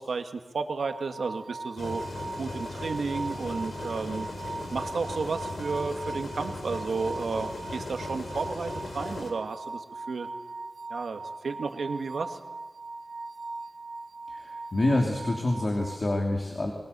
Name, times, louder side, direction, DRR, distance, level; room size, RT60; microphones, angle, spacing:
voice 1, 0.0-2.0 2.4-4.3 4.7-10.3 10.9-12.4, right 4 dB, 85° right, 6 dB, 1.8 m, -32 dB
sound 1, 0.8-16.0, right 3 dB, 65° right, 1.6 m, -40 dB
sound 2, 1.8-9.3, left 2 dB, 80° left, 4.0 m, -38 dB
voice 2, 14.3-16.7, left 1 dB, 45° left, 1 dB, 3.0 m, -27 dB
29.0 x 22.0 x 6.9 m, 1.2 s
wide cardioid pair, 80°, 0 cm